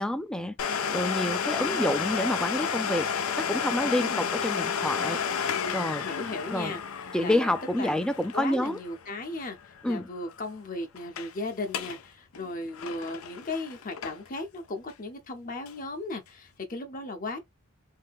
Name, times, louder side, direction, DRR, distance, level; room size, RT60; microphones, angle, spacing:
voice 1, 0.0-6.0 6.5-6.8 7.1-8.8 9.8-10.1, left 1 dB, 5° left, 0.3 m, -29 dB
Domestic sounds home sounds, 0.6-10.0 10.3-10.4 11.0-11.3 11.6-12.0 12.3-14.4 14.9-15.0 15.7-15.8, left 7 dB, 90° left, 0.5 m, -31 dB
voice 2, 1.5-1.9 3.8-4.2 6.0-6.8 7.2-7.5 7.8-8.0 8.3-17.4, left 2 dB, 40° left, 0.7 m, -36 dB
3.3 x 2.6 x 3.4 m
head